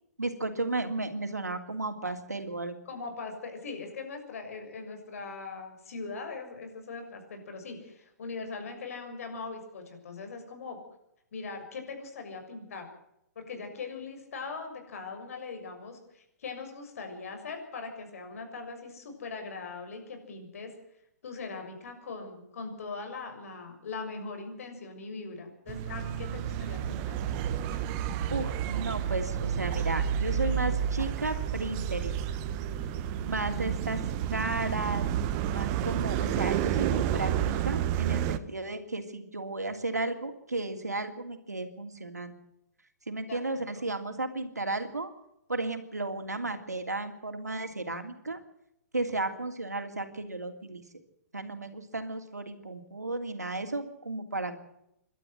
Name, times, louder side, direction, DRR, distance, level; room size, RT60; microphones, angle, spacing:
voice 1, 0.2-2.8 28.3-32.2 33.2-34.0 34.3-35.1 35.5-37.3 37.6-42.4 43.1-45.1 45.5-48.4 48.9-50.8 51.3-54.6, right 2 dB, 90° right, 6 dB, 3.0 m, -34 dB
voice 2, 2.8-10.8 11.3-12.9 13.3-20.7 21.2-27.2 43.3-43.8, left 4 dB, 60° left, 5 dB, 6.8 m, -40 dB
sound 1, 25.7-38.4, right 9 dB, 35° right, 1.4 m, -30 dB
28.0 x 12.5 x 7.9 m, 0.80 s
figure-of-eight pair, 125°, 9 cm